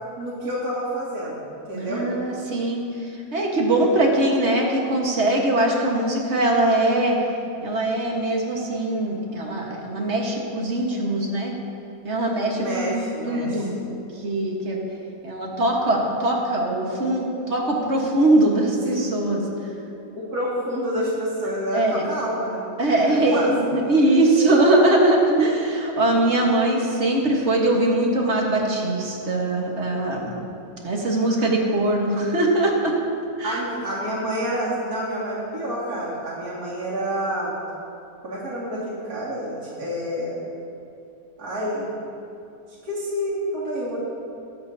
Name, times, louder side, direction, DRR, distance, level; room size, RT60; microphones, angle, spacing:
voice 1, 0.2-2.1 12.6-13.7 18.8-19.1 20.1-22.7 23.0-23.6 33.4-37.5 38.2-40.4 41.4-41.9 42.8-44.0, equal, 65° right, -10 dB, 2.7 m, -28 dB
voice 2, 1.7-7.2 7.6-11.5 12.0-14.0 14.2-14.8 15.2-19.4 21.7-22.0 22.8-30.3 30.8-33.0 33.4-33.6, right 1 dB, 45° right, -1 dB, 1.6 m, -21 dB
22.0 x 7.9 x 2.8 m, 2.7 s
omnidirectional pair, 1.8 m